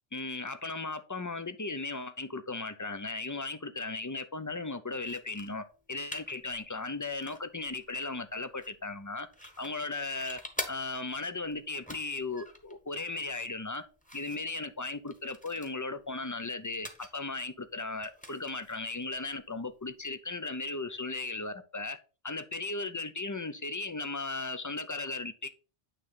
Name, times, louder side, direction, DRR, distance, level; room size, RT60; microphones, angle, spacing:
voice 1, 0.1-13.8 14.1-22.0 22.2-25.5, left 3 dB, 30° left, 0.4 m, -36 dB
sound 1, 5.0-20.1, left 1 dB, 10° left, 1.0 m, -48 dB
9.1 x 3.2 x 5.6 m
omnidirectional pair, 1.1 m